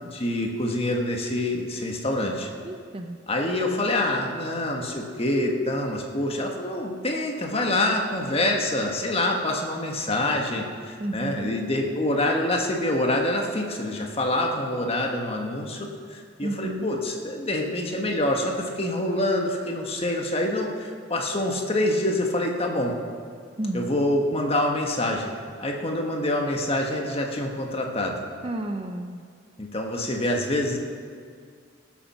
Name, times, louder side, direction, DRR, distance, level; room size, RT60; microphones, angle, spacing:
voice 1, 0.0-2.5 3.3-23.0 23.7-25.3 25.6-28.2 29.6-30.8, left 1 dB, 30° left, 1 dB, 1.5 m, -26 dB
voice 2, 2.6-3.2 11.0-11.6 16.4-16.9 23.6-23.9 28.4-29.3, right 1 dB, 30° right, 5 dB, 0.7 m, -31 dB
18.5 x 7.5 x 6.2 m, 2.1 s
head